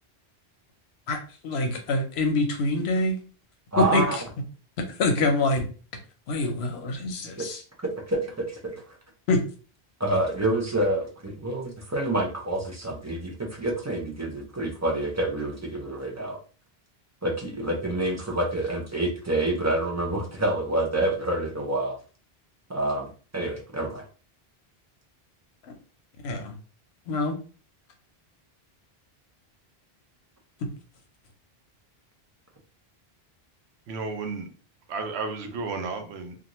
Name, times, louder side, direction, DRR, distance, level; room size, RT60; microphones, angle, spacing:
voice 1, 1.1-3.2 3.8-4.2 5.0-5.6 6.3-7.6 9.3-9.4 26.2-26.5 27.1-27.4, left 2 dB, 80° left, 0.9 m, -25 dB
voice 2, 3.7-4.2 7.4-7.5 7.8-8.7 10.0-16.4 17.2-22.0 22.7-24.0, right 1 dB, 20° right, 0.4 m, -27 dB
voice 3, 33.9-34.5 34.9-36.4, right 4 dB, 90° right, 0.9 m, -32 dB
2.5 x 2.4 x 2.9 m
omnidirectional pair, 1.1 m